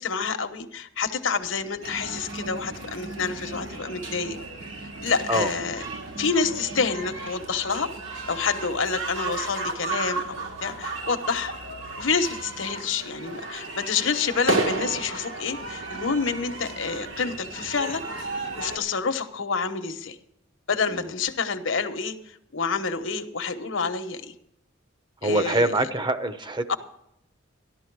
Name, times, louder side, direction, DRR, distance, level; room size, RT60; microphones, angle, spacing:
voice 1, 0.0-4.4 4.8-5.8 6.2-7.9 8.3-11.5 12.0-18.0 18.6-20.2 20.7-24.3 25.2-25.7 26.7-26.8, left 5 dB, 75° left, 8 dB, 1.1 m, -28 dB
sound 1, 1.8-18.8, right 2 dB, 75° right, 2.1 m, -34 dB
voice 2, 25.2-26.8, right 1 dB, 25° right, 10 dB, 0.8 m, -24 dB
13.5 x 11.5 x 4.7 m, 0.77 s
head